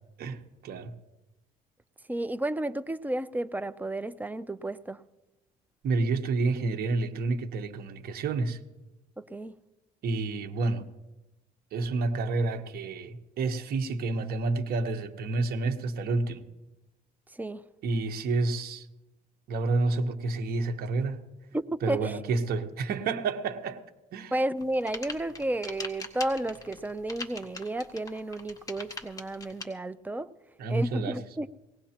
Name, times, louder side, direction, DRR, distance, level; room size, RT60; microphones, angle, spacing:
voice 1, 0.2-0.9 5.8-8.6 10.0-10.8 11.7-16.4 17.8-18.9 19.5-21.2 21.8-23.8 24.1-24.3 30.6-31.2, right 3 dB, 65° right, 1.1 m, -29 dB
voice 2, 2.1-5.0 9.2-9.5 17.4-17.6 21.5-22.2 24.3-30.3 30.7-31.5, right 1 dB, 10° right, 0.5 m, -32 dB
sound 1, 24.6-29.6, left 3 dB, 20° left, 1.7 m, -40 dB
19.5 x 17.5 x 2.9 m
cardioid pair, 110°, 17 cm